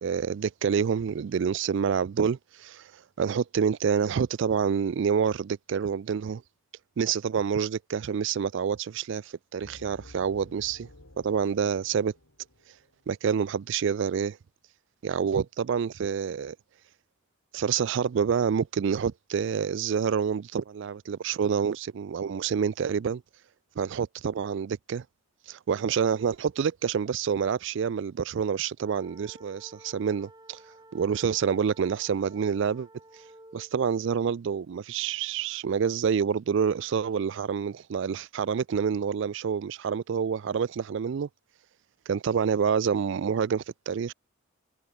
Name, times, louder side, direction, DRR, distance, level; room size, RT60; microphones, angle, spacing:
voice 1, 0.0-2.8 3.2-6.4 7.0-10.9 11.2-12.1 13.1-14.4 15.0-16.6 17.5-23.2 23.8-25.0 25.5-30.6 30.9-32.9 33.5-41.3 42.1-44.1, right 6 dB, 55° right, 0.3 m, -27 dB
sound 1, 9.6-13.0, left 1 dB, 75° left, 4.5 m, -52 dB
sound 2, 28.8-33.7, right 2 dB, 20° right, 7.1 m, -53 dB
head